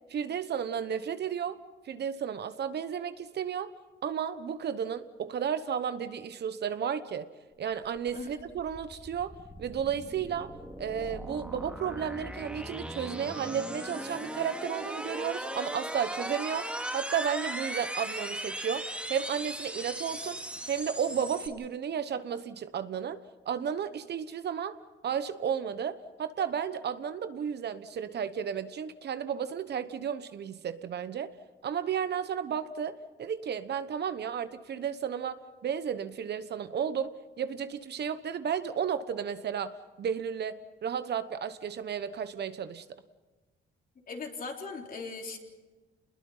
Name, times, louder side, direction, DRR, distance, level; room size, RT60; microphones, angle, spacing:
voice 1, 0.1-1.6 1.8-3.7 4.0-7.3 7.6-10.5 10.8-18.8 19.1-31.3 31.6-39.7 40.0-42.8, right 8 dB, 60° right, 12 dB, 1.1 m, -33 dB
sound 1, 7.7-21.5, right 1 dB, 5° right, 2.5 m, -38 dB
voice 2, 44.1-45.4, left 4 dB, 45° left, 2 dB, 3.6 m, -39 dB
27.0 x 21.0 x 5.6 m, 1.2 s
cardioid pair, 90°, 20 cm